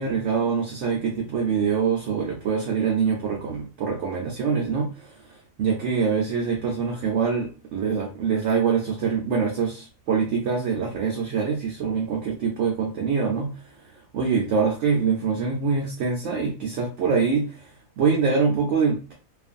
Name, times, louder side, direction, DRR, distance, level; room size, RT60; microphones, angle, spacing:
voice 1, 0.0-19.1, right 5 dB, 65° right, 0 dB, 0.8 m, -25 dB
2.5 x 2.4 x 2.4 m, 0.34 s
omnidirectional pair, 1.5 m